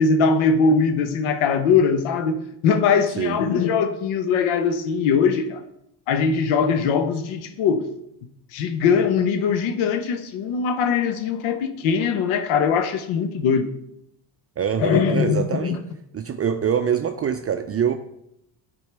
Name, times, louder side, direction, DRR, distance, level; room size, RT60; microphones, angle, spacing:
voice 1, 0.0-5.6 6.1-7.9 8.5-13.7 14.8-15.8, left 5 dB, 85° left, 0.8 m, -21 dB
voice 2, 14.6-15.8 16.1-17.9, right 8 dB, 30° right, 0.4 m, -24 dB
9.3 x 4.5 x 3.3 m
supercardioid pair, 75°, 47 cm